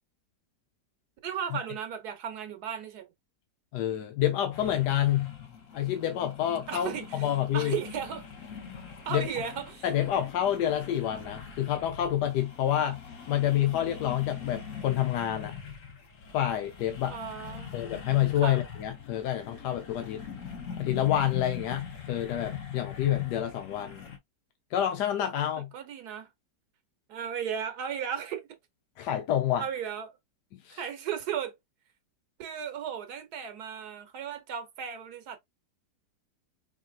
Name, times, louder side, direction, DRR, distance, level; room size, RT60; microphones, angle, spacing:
voice 1, 1.2-3.1 6.7-8.2 9.0-9.8 17.1-17.7 18.3-18.6 25.4-26.3 27.1-28.6 29.6-30.1 30.8-31.5 32.4-35.4, right 8 dB, 70° right, 1.3 m, -35 dB
voice 2, 3.7-5.3 5.7-7.8 9.1-9.2 9.8-13.0 13.3-15.5 16.3-17.2 17.7-20.2 20.8-24.1 24.7-25.7 29.0-29.6 30.6-30.8, left 11 dB, 80° left, 1.2 m, -28 dB
sound 1, 4.5-24.2, left 7 dB, 55° left, 1.3 m, -42 dB
4.9 x 2.8 x 2.3 m
omnidirectional pair, 1.8 m